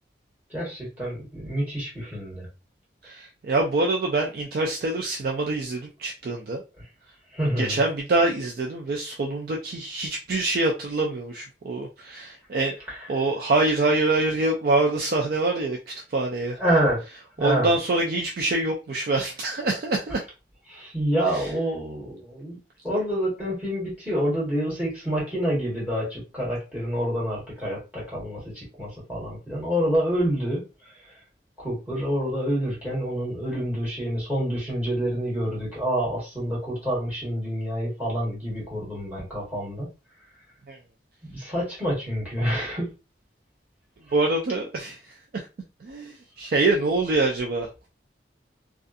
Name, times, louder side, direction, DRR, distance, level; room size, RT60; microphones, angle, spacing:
voice 1, 0.5-2.5 7.3-7.8 12.9-13.0 16.6-17.0 17.4-17.7 20.7-22.6 22.8-30.6 31.6-39.9 41.3-42.9, equal, 10° right, -7 dB, 1.4 m, -27 dB
voice 2, 3.0-6.6 7.6-12.8 13.1-16.6 17.4-20.2 21.3-21.5 40.7-40.8 44.1-45.0 45.3-45.5 45.8-47.9, right 2 dB, 55° right, 0 dB, 0.3 m, -25 dB
2.5 x 2.4 x 2.5 m, 0.30 s
head